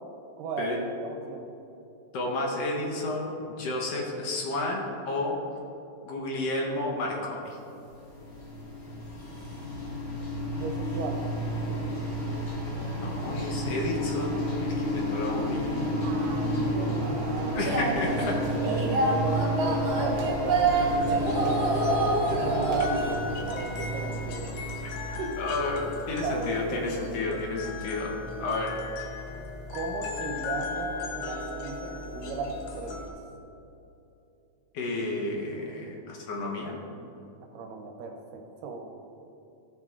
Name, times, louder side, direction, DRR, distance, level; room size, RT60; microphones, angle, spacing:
voice 1, 0.4-1.5 10.5-11.3 16.0-17.9 18.2-24.5 25.2-25.6 26.2-27.4 29.7-33.2 37.5-38.9, right 4 dB, 75° right, 3 dB, 2.2 m, -36 dB
voice 2, 2.1-5.4 6.0-7.6 12.7-15.7 17.5-18.4 25.4-28.8 34.7-36.8, left 2 dB, 65° left, -1 dB, 1.6 m, -31 dB
sound 1, 7.8-26.8, equal, 45° left, 2.5 m, -32 dB
sound 2, 17.6-23.1, right 2 dB, 60° right, 1.9 m, -27 dB
sound 3, 19.9-33.1, left 3 dB, 90° left, 2.7 m, -38 dB
14.0 x 7.3 x 2.4 m, 2.8 s
omnidirectional pair, 4.0 m